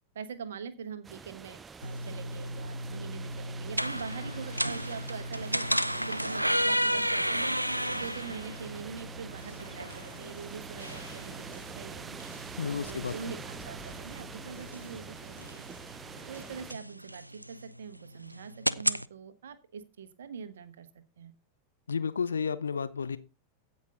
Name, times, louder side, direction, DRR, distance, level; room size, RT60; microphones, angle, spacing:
voice 1, 0.1-5.7 6.1-7.5 7.9-12.2 12.8-15.7 16.3-21.3, right 6 dB, 65° right, 1.2 m, -43 dB
sound 1, 1.0-16.7, right 5 dB, 15° right, 0.4 m, -46 dB
sound 2, 1.8-19.1, equal, 90° right, 0.4 m, -34 dB
voice 2, 12.6-13.1 21.9-23.2, left 6 dB, 70° left, 0.7 m, -31 dB
16.0 x 5.4 x 3.9 m
figure-of-eight pair, 90°, 0 cm